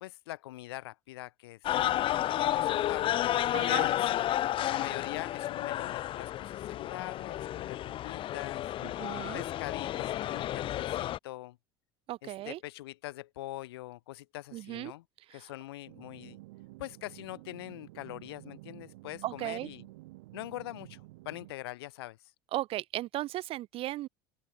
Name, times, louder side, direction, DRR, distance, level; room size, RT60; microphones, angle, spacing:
voice 1, 0.0-1.8 2.3-3.2 3.7-4.3 4.6-8.7 9.3-11.6 12.2-15.0 15.3-16.4 16.8-19.9 20.3-22.2, left 17 dB, 75° left, 0.9 m, -43 dB
sound 1, 1.6-11.2, left 13 dB, 40° left, 0.6 m, -31 dB
voice 2, 3.5-3.9 9.0-9.4 12.1-12.6 14.5-14.9 15.3-15.5 19.2-19.7 22.5-24.1, right 16 dB, 45° right, 0.5 m, -36 dB
sound 2, 15.9-21.5, right 20 dB, 70° right, 7.0 m, -51 dB
open air
hypercardioid pair, 75°, 13 cm